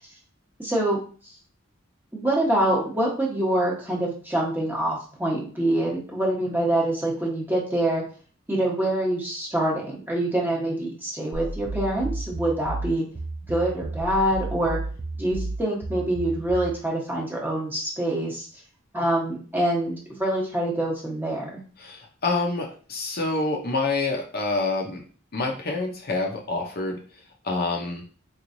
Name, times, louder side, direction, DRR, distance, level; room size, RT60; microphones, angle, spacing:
voice 1, 0.6-1.0 2.1-8.0 8.5-13.0 13.5-14.8 15.2-18.5 18.9-21.6, right 1 dB, 10° right, -3 dB, 1.1 m, -25 dB
sound 1, 11.3-16.8, right 2 dB, 30° right, 0.5 m, -32 dB
voice 2, 21.8-25.0 25.3-28.0, left 3 dB, 50° left, 1 dB, 0.7 m, -27 dB
4.0 x 3.1 x 2.6 m, 0.40 s
head